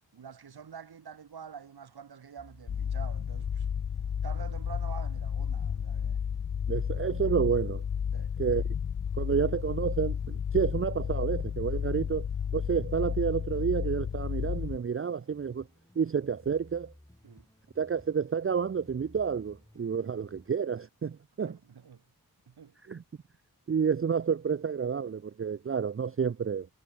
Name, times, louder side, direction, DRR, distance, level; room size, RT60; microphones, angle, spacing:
voice 1, 0.1-3.7 4.2-6.2 8.1-8.3 10.6-10.8 17.2-17.5 20.0-20.2 21.4-22.0 22.5-22.8, right 7 dB, 90° right, 2.2 m, -47 dB
sound 1, 2.4-20.5, left 1 dB, 10° left, 4.7 m, -57 dB
sound 2, 2.7-14.8, left 7 dB, 35° left, 0.4 m, -32 dB
voice 2, 6.7-7.8 8.4-8.6 9.2-12.3 12.5-15.7 16.0-16.9 17.8-21.5 22.9-23.0 23.7-26.7, right 6 dB, 35° right, 0.6 m, -30 dB
cardioid pair, 50°, 37 cm